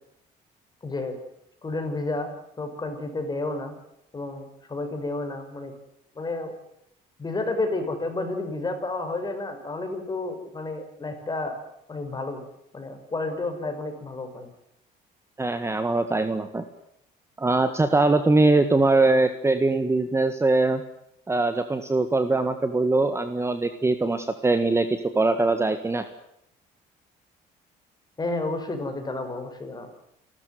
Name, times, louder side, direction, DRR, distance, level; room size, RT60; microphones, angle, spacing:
voice 1, 0.8-1.2 1.6-2.3 2.6-3.7 4.1-5.7 6.2-6.5 7.2-11.6 11.9-12.5 12.7-14.5 28.2-29.9, left 2 dB, 25° left, 6 dB, 6.0 m, -31 dB
voice 2, 15.4-16.7 17.4-20.8 21.3-26.0, right 2 dB, 15° right, 9 dB, 1.7 m, -22 dB
29.0 x 13.5 x 9.4 m, 0.78 s
cardioid pair, 110°, 17 cm